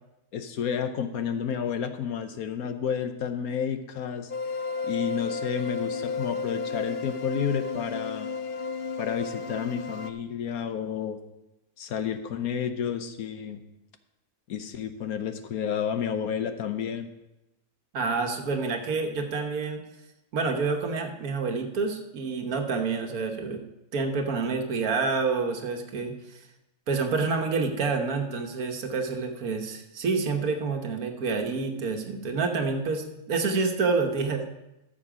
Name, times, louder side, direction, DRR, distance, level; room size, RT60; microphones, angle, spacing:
voice 1, 0.3-4.3 4.8-8.3 9.0-11.2 11.8-13.6 14.5-17.1, left 7 dB, 75° left, 8 dB, 1.3 m, -31 dB
sound 1, 4.3-10.1, left 4 dB, 60° left, 0.6 m, -33 dB
voice 2, 17.9-19.8 20.3-23.6 23.9-26.1 26.9-34.6, right 4 dB, 75° right, 4 dB, 1.6 m, -28 dB
14.0 x 6.6 x 4.9 m, 0.94 s
omnidirectional pair, 1.6 m